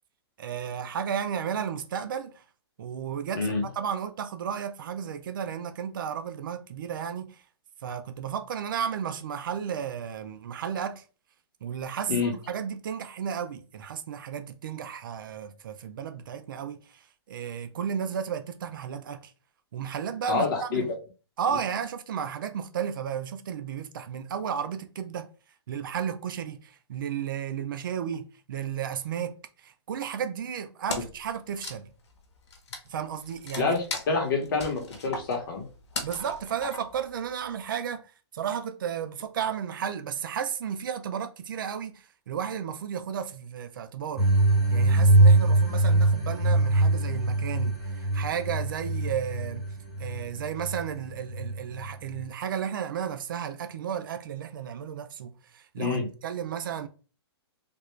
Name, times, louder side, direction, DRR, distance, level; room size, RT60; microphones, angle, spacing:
voice 1, 0.4-2.4 2.8-7.4 7.8-11.0 11.6-19.3 19.7-20.9 21.4-25.3 25.7-31.9 32.9-33.7 36.0-44.3 44.7-49.7 50.0-56.9, right 8 dB, 50° right, 0.4 m, -33 dB
voice 2, 20.3-20.8 33.6-35.7 55.8-56.1, left 4 dB, 50° left, 1.1 m, -27 dB
Wood, 30.9-31.3 31.5-37.1, left 3 dB, 80° left, 1.0 m, -38 dB
sound 1, 44.2-52.2, right 2 dB, 5° right, 0.7 m, -23 dB
3.3 x 2.4 x 3.1 m
hypercardioid pair, 170°, 14 cm